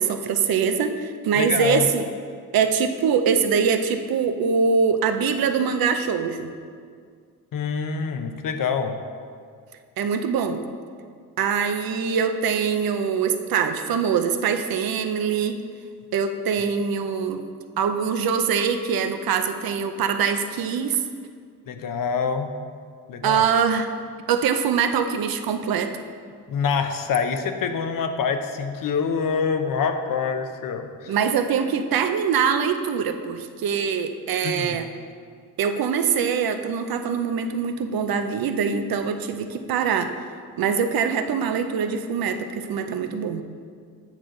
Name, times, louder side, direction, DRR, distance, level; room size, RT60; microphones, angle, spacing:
voice 1, 0.0-2.0 2.5-6.5 10.0-10.6 11.4-15.6 16.1-17.4 17.8-21.0 23.2-23.9 24.3-26.0 31.1-34.9 35.6-40.1 40.6-43.4, right 6 dB, 70° right, 7 dB, 0.7 m, -23 dB
voice 2, 1.4-1.9 7.5-9.0 21.7-22.5 23.1-23.5 26.5-31.2 34.4-34.8, left 6 dB, 60° left, 7 dB, 0.7 m, -26 dB
9.0 x 6.3 x 3.8 m, 2.1 s
cardioid pair, 90°, 37 cm